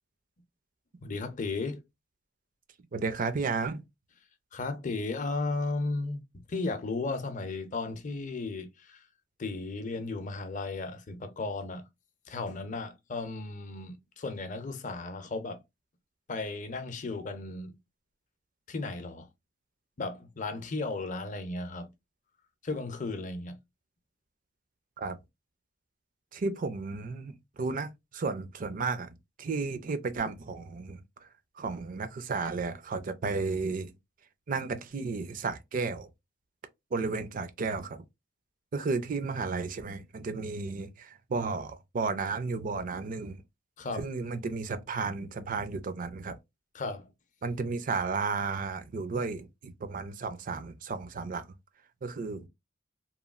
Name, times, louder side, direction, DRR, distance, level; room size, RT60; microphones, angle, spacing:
voice 1, 1.0-1.8 4.5-9.0 9.4-11.9 12.3-15.6 16.3-17.7 18.7-19.3 20.0-21.9 22.6-23.6 43.8-44.1 46.7-47.1, left 3 dB, 45° left, 0.5 m, -35 dB
voice 2, 2.9-3.8 25.0-25.2 26.3-31.3 31.6-33.9 34.5-36.1 36.9-38.0 38.7-43.4 43.9-46.4 47.4-51.5 52.0-52.5, right 4 dB, 45° right, 0.4 m, -33 dB
3.0 x 2.2 x 2.4 m
head